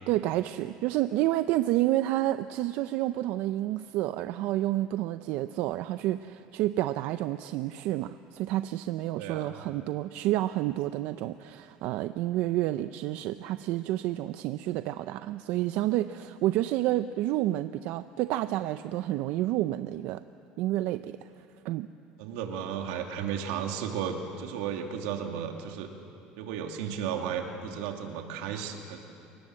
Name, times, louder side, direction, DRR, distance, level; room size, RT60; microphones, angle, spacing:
voice 1, 0.1-20.2 20.6-21.3 21.6-21.9, right 15 dB, 65° right, 11 dB, 0.6 m, -29 dB
voice 2, 9.1-9.6 22.2-25.9 26.4-29.0, right 8 dB, 85° right, 3 dB, 2.6 m, -34 dB
29.0 x 18.5 x 7.7 m, 2.6 s
cardioid pair, 140°, 3 cm